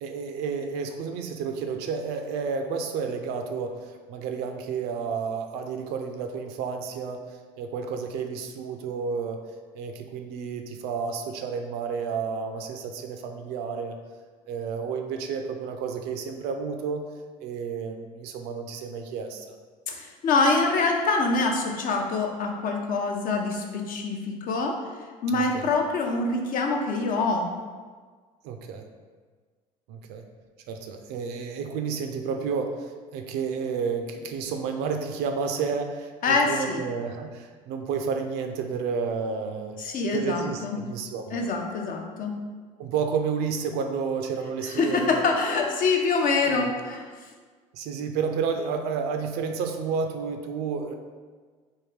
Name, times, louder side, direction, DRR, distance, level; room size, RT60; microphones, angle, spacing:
voice 1, 0.0-7.2 7.6-9.4 9.7-14.0 14.5-17.1 17.4-19.6 25.3-25.7 28.4-28.8 29.9-30.2 30.7-39.8 40.1-41.4 42.8-45.3 46.4-46.7 47.7-50.9, right 5 dB, 65° right, 5 dB, 0.4 m, -31 dB
voice 2, 19.9-24.8 25.2-27.5 36.2-36.8 39.8-40.8 41.3-42.3 44.7-47.0, left 3 dB, 50° left, 2 dB, 0.6 m, -25 dB
3.5 x 2.2 x 3.1 m, 1.5 s
hypercardioid pair, 75°, 18 cm